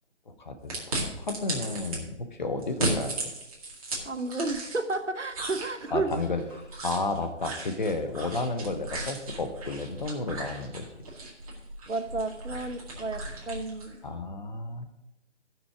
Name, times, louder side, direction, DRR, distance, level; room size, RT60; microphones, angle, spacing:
voice 1, 0.3-3.3 5.9-10.8 14.0-14.9, left 3 dB, 40° left, 8 dB, 1.1 m, -32 dB
sound 1, 0.7-2.0 2.6-5.0 5.3-13.9, right 2 dB, 30° right, 2.2 m, -36 dB
voice 2, 4.0-6.2 11.9-14.0, right 3 dB, 85° right, 8 dB, 1.2 m, -32 dB
14.0 x 6.1 x 4.8 m, 0.93 s
figure-of-eight pair, 150°, 36 cm